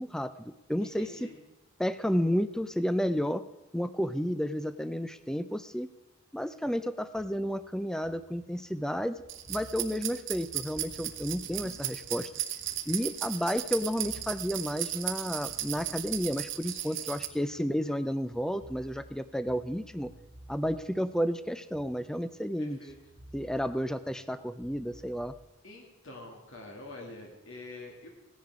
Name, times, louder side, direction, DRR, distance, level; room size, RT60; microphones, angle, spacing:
voice 1, 0.0-1.3 1.8-3.4 3.7-5.9 6.3-9.1 9.5-12.3 12.9-20.1 20.5-22.8 23.3-25.3, equal, 5° left, 13 dB, 0.4 m, -31 dB
voice 2, 0.8-1.4 16.7-17.0 22.6-22.9 25.6-28.1, left 2 dB, 70° left, 0 dB, 2.3 m, -46 dB
sound 1, 7.1-13.5 13.7-18.0 18.3-22.6 22.9-25.4, right 1 dB, 30° right, 1.5 m, -55 dB
sound 2, 9.3-17.3, right 13 dB, 65° right, 1.0 m, -36 dB
16.5 x 10.5 x 4.8 m, 0.97 s
head